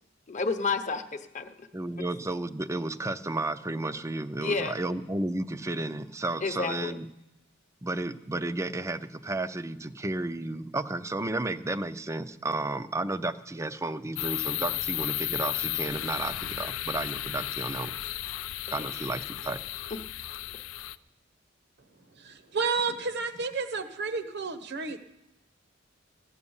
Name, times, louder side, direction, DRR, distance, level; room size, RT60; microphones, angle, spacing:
voice 1, 0.3-1.7 4.4-4.7 6.4-7.0, left 4 dB, 35° left, 8 dB, 0.9 m, -30 dB
voice 2, 1.7-7.1 7.8-17.9 18.7-19.6, right 2 dB, 15° right, 12 dB, 0.5 m, -32 dB
sound 1, 14.2-21.0, left 14 dB, 90° left, 0.4 m, -34 dB
voice 3, 22.1-25.0, right 4 dB, 55° right, 11 dB, 1.0 m, -31 dB
15.0 x 9.7 x 7.1 m, 0.94 s
head